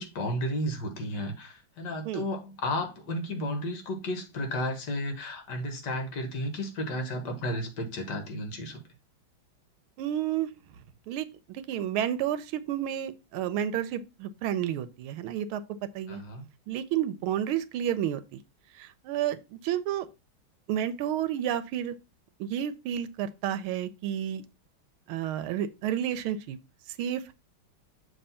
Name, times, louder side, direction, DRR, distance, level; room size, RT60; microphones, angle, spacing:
voice 1, 0.0-8.8 16.1-16.5, left 1 dB, 60° left, 1.8 m, -33 dB
voice 2, 10.0-10.5 11.1-15.6 15.9-16.2 16.7-18.2 18.8-20.1 20.7-21.9 22.4-24.4 25.1-26.6 27.0-27.3, right 10 dB, 85° right, 1.5 m, -31 dB
6.9 x 2.9 x 5.5 m
omnidirectional pair, 2.3 m